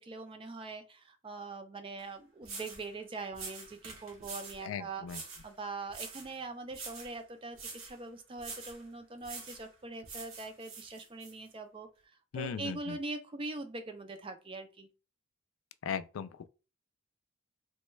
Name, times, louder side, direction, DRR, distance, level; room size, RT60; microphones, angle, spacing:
voice 1, 0.0-11.9 12.3-14.9, right 3 dB, 25° right, 0.3 m, -42 dB
sound 1, 2.0-2.1 2.4-2.9 3.3-4.6 5.1-5.5 5.9-6.3 6.7-7.2 7.5-8.0 8.4-8.8 9.2-9.7 10.0-11.3, right 4 dB, 75° right, 0.9 m, -45 dB
voice 2, 4.6-5.2 12.3-13.0 15.8-16.5, left 7 dB, 75° left, 0.3 m, -38 dB
3.2 x 2.2 x 3.1 m
head